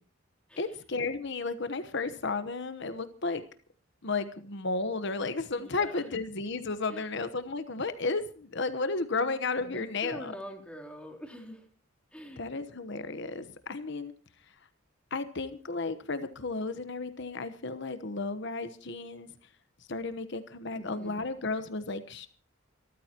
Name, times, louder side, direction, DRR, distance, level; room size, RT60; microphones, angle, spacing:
voice 1, 0.6-3.4 4.0-10.3 12.4-14.1 15.1-19.3 19.9-22.3, left 3 dB, 60° left, 11 dB, 1.1 m, -33 dB
voice 2, 5.6-6.0 6.9-7.0 9.2-9.4 9.7-11.6 12.1-12.4 20.7-21.2, equal, 5° left, 0 dB, 3.4 m, -44 dB
26.0 x 14.0 x 3.0 m, 0.42 s
head